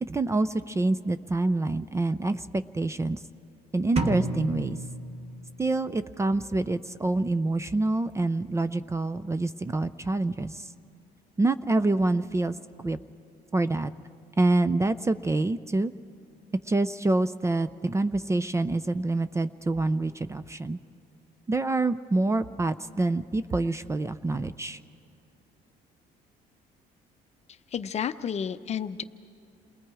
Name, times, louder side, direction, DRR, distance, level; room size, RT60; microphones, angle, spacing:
voice 1, 0.0-3.2 3.7-4.8 5.6-10.7 11.4-12.6 12.8-13.0 13.5-13.9 14.4-15.9 16.6-20.8 21.5-24.8, right 2 dB, 15° right, 13 dB, 0.5 m, -26 dB
sound 1, 4.0-5.8, right 2 dB, 35° right, 1.5 m, -31 dB
voice 2, 27.7-29.0, left 8 dB, 40° left, 11 dB, 0.7 m, -31 dB
29.0 x 19.0 x 4.8 m, 2.7 s
cardioid pair, 110°, 17 cm